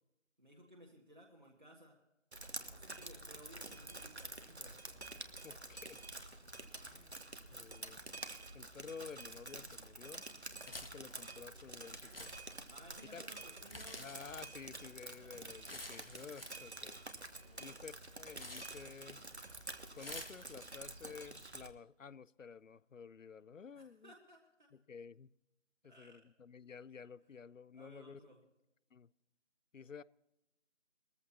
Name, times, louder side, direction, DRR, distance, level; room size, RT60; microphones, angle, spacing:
voice 1, 0.4-1.9 2.7-5.0 12.7-14.0 15.2-15.7 17.4-17.8 23.7-24.7 25.9-26.2 27.7-28.4, right 1 dB, 40° right, 1.6 m, -59 dB
Drip, 2.3-21.7, right 2 dB, 60° right, 1.4 m, -49 dB
voice 2, 5.4-6.0 6.9-7.1 7.5-8.0 8.5-10.2 10.7-12.3 13.1-13.2 14.0-17.0 17.6-19.2 20.0-24.1 24.9-25.3 25.8-28.2 28.9-29.1 29.7-30.0, left 6 dB, 85° left, 0.6 m, -52 dB
sound 1, 10.6-20.9, left 1 dB, 50° left, 1.1 m, -54 dB
20.5 x 14.5 x 2.8 m
figure-of-eight pair, 180°, 38 cm